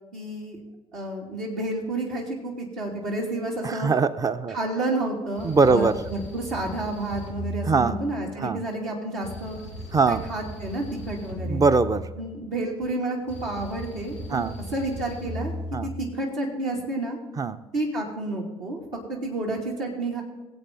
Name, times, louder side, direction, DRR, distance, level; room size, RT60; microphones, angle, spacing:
voice 1, 0.1-0.6 0.9-3.9 4.5-9.6 10.1-11.6 12.2-14.5 14.7-15.5 15.8-17.2 17.7-20.2, right 2 dB, 60° right, -4 dB, 2.8 m, -30 dB
voice 2, 3.6-4.6 5.4-6.0 7.7-8.0 8.4-8.6 9.9-10.2 11.4-12.1 14.3-14.6 15.7-15.9 17.4-17.6, right 4 dB, 25° right, 13 dB, 0.7 m, -22 dB
sound 1, 5.4-8.5 9.2-12.5 13.3-16.1, equal, 80° right, 5.0 m, -37 dB
21.5 x 8.2 x 3.9 m, 1.1 s
figure-of-eight pair, 55°, 14 cm